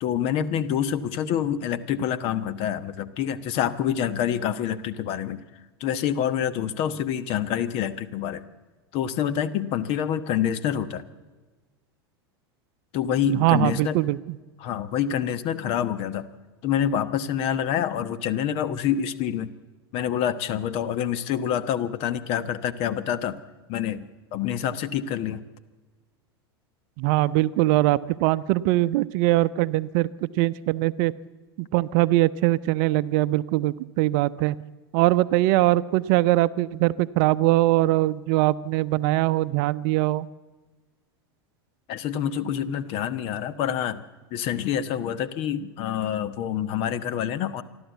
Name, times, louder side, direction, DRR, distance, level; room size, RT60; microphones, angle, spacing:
voice 1, 0.0-5.4 5.8-8.4 8.9-11.0 12.9-14.0 14.6-16.3 16.6-19.5 19.9-23.4 23.7-24.1 24.3-25.4 41.9-44.0 44.3-47.6, left 9 dB, 50° left, 13 dB, 1.1 m, -27 dB
voice 2, 13.3-14.2 27.0-31.1 31.7-34.6 34.9-40.3, right 17 dB, 55° right, 16 dB, 0.6 m, -22 dB
27.5 x 12.0 x 8.1 m, 1.3 s
hypercardioid pair, 85°, 13 cm